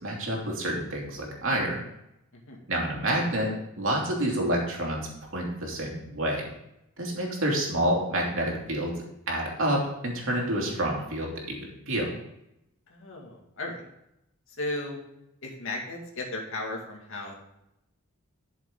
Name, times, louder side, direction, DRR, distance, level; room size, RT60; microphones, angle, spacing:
voice 1, 0.0-1.8 2.7-6.5 7.0-8.9 9.3-12.1, right 1 dB, 65° right, -1 dB, 3.0 m, -28 dB
voice 2, 12.9-13.9 14.5-15.0 15.4-17.3, left 2 dB, 65° left, 0 dB, 2.3 m, -35 dB
12.5 x 6.9 x 3.8 m, 0.83 s
head